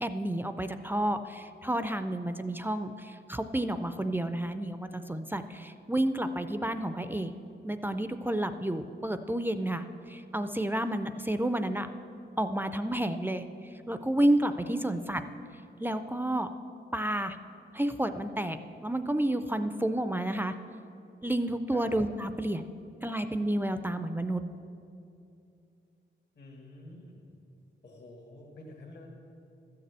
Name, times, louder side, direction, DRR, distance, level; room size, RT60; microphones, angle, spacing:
voice 1, 0.0-7.3 7.6-11.9 12.4-13.4 13.9-15.2 15.8-16.5 16.9-17.4 17.7-18.6 18.8-20.5 21.2-22.6 23.0-24.4, right 1 dB, 10° right, 9 dB, 0.4 m, -30 dB
voice 2, 26.3-27.2 27.8-29.1, left 2 dB, 60° left, -2 dB, 1.7 m, -49 dB
13.0 x 6.7 x 8.0 m, 2.6 s
wide cardioid pair, 105°, 20 cm